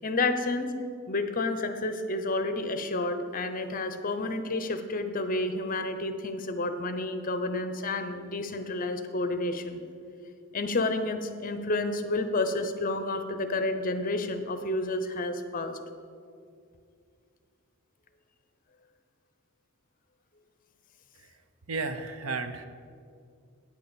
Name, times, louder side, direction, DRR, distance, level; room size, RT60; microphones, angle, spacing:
voice 1, 0.0-0.7 1.1-9.8 10.5-15.8, left 2 dB, 40° left, 8 dB, 0.7 m, -30 dB
voice 2, 21.7-22.7, right 4 dB, 70° right, 9 dB, 0.7 m, -33 dB
9.5 x 6.7 x 7.0 m, 2.3 s
head